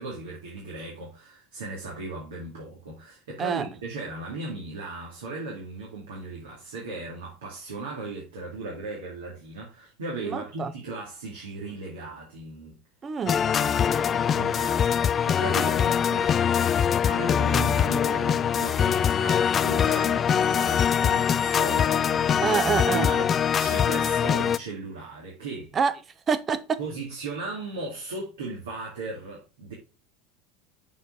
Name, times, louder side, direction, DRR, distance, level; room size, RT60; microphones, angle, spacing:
voice 1, 0.0-12.8 13.5-16.3 17.1-25.7 26.8-29.7, right 2 dB, 75° right, 2.2 m, -37 dB
voice 2, 10.2-10.7 13.0-13.4 22.4-23.1 25.7-25.9 26.3-26.8, right 6 dB, 30° right, 0.8 m, -26 dB
sound 1, 13.3-24.6, left 8 dB, 35° left, 0.4 m, -23 dB
6.9 x 4.6 x 4.9 m
figure-of-eight pair, 80°, 0 cm